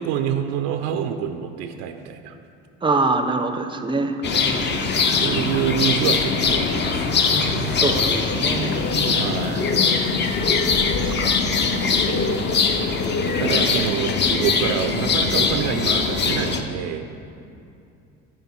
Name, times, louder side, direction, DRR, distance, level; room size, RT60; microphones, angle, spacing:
voice 1, 0.0-2.4 4.8-7.9 9.1-9.9 13.4-17.0, right 8 dB, 75° right, 7 dB, 0.5 m, -27 dB
voice 2, 2.8-5.0 7.7-9.2 11.0-11.4 13.4-13.6, right 3 dB, 15° right, 7 dB, 0.5 m, -25 dB
sound 1, 4.2-16.6, left 4 dB, 35° left, 0.6 m, -21 dB
9.5 x 3.8 x 4.3 m, 2.6 s
supercardioid pair, 80°, 31 cm